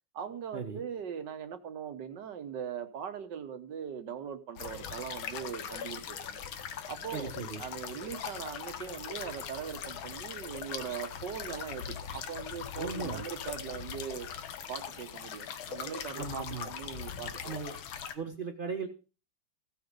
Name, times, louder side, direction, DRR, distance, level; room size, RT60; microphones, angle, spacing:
voice 1, 0.1-6.4 6.9-7.3 7.6-17.8, right 8 dB, 60° right, 10 dB, 1.7 m, -40 dB
sound 1, 4.6-18.1, left 8 dB, 80° left, 2.0 m, -41 dB
voice 2, 7.1-7.6 12.8-13.2 16.2-16.7 17.4-17.7 18.1-18.9, right 4 dB, 30° right, 2 dB, 1.3 m, -37 dB
15.5 x 8.1 x 5.3 m, 0.34 s
omnidirectional pair, 2.2 m